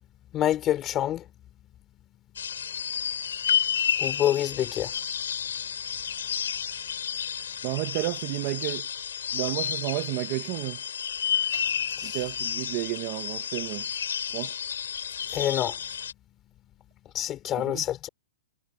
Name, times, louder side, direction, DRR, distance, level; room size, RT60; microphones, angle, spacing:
voice 1, 0.3-1.3 4.0-5.1 12.0-12.2 15.3-15.8 17.1-18.1, left 12 dB, 15° left, 3.0 m, -27 dB
sound 1, 2.4-16.1, left 8 dB, 85° left, 4.6 m, -31 dB
voice 2, 7.6-9.1 9.3-10.8 12.0-13.9 14.3-14.6 17.7-17.8, right 20 dB, 25° right, 0.8 m, -31 dB
hypercardioid pair, 175°, 0 cm